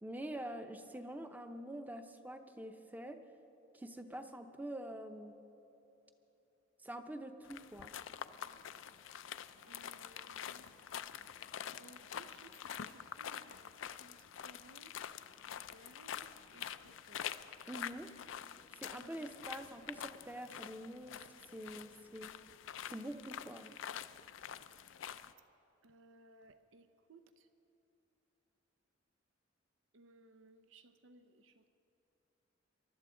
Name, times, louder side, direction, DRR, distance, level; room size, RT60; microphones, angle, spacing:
voice 1, 0.0-3.2 3.7-5.4 6.8-7.9 17.7-18.1 18.8-21.2 21.5-22.3 22.9-23.7, right 1 dB, 10° right, 7 dB, 0.7 m, -46 dB
sound 1, 7.4-25.3, left 9 dB, 80° left, 0.4 m, -47 dB
voice 2, 9.6-10.7 11.8-12.5 12.8-13.7 14.0-14.2 14.4-14.9 15.7-16.7 17.1-17.4 18.9-19.3 25.8-27.2 29.9-31.7, right 2 dB, 85° right, 10 dB, 0.6 m, -61 dB
23.5 x 12.5 x 3.8 m, 2.9 s
head